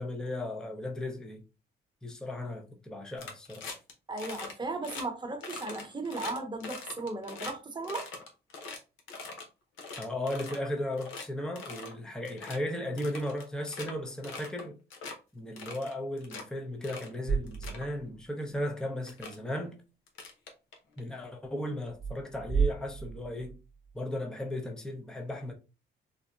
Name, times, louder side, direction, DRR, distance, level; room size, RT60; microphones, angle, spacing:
voice 1, 0.0-1.4 2.0-3.6 10.0-14.8 15.3-19.8 21.0-23.6 23.9-25.5, left 1 dB, 5° left, 0.6 m, -36 dB
sound 1, 3.2-3.9 4.2-4.5 4.8-5.0 5.4-7.5 7.8-9.4 9.8-10.7 11.0-11.2 11.5-11.9 12.2-12.6 13.0-13.9 14.2-14.6 14.9-15.1 15.6-16.4 16.8-17.1 17.5-17.8 18.6-18.7 19.1-19.3 20.1-21.0, left 3 dB, 85° left, 0.9 m, -42 dB
voice 2, 4.1-8.1, right 3 dB, 25° right, 0.9 m, -36 dB
sound 2, 17.3-18.3 18.6-18.7 21.9-23.9, right 6 dB, 45° right, 0.5 m, -32 dB
3.8 x 2.1 x 2.3 m
cardioid pair, 90°, 20 cm